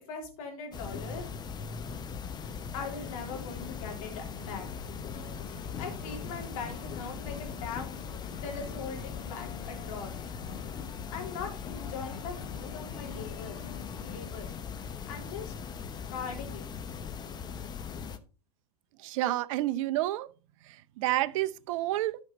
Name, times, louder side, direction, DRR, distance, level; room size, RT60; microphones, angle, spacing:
voice 1, 0.1-1.2 2.7-4.7 5.8-10.1 11.1-13.6 14.0-14.5 15.1-15.5 16.1-16.6, left 5 dB, 60° left, 3.6 m, -40 dB
sound 1, 0.7-18.2, left 6 dB, 20° left, 0.9 m, -40 dB
sound 2, 4.3-13.8, left 1 dB, 15° right, 2.3 m, -56 dB
sound 3, 5.1-14.2, left 7 dB, 85° left, 1.3 m, -48 dB
voice 2, 19.0-20.3 20.6-22.2, right 15 dB, 55° right, 0.6 m, -30 dB
12.5 x 5.3 x 4.0 m
hypercardioid pair, 110°, 20 cm